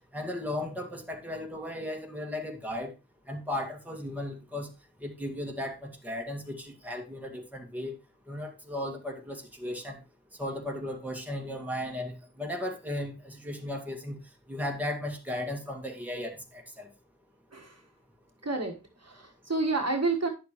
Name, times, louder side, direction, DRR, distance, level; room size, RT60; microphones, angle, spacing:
voice 1, 0.1-2.9 3.3-4.7 5.0-7.9 8.3-10.0 10.4-14.2 14.5-16.9, left 1 dB, 5° right, 1 dB, 1.9 m, -36 dB
voice 2, 18.4-18.7 19.0-20.3, right 3 dB, 40° right, 2 dB, 1.6 m, -29 dB
9.8 x 6.7 x 3.1 m, 0.28 s
cardioid pair, 40°, 38 cm